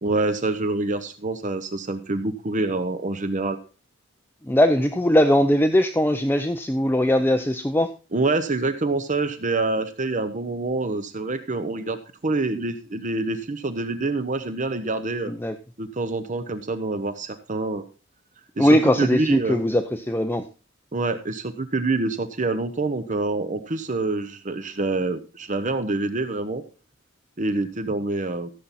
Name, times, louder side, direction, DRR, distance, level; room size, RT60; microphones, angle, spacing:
voice 1, 0.0-3.6 8.1-12.0 12.2-15.3 15.8-17.8 18.6-19.6 20.9-26.6 27.4-28.5, right 3 dB, 40° right, 10 dB, 0.9 m, -26 dB
voice 2, 4.5-7.9 15.3-15.5 18.6-20.4, left 1 dB, 10° left, 6 dB, 0.6 m, -20 dB
15.0 x 7.6 x 4.2 m, 0.33 s
head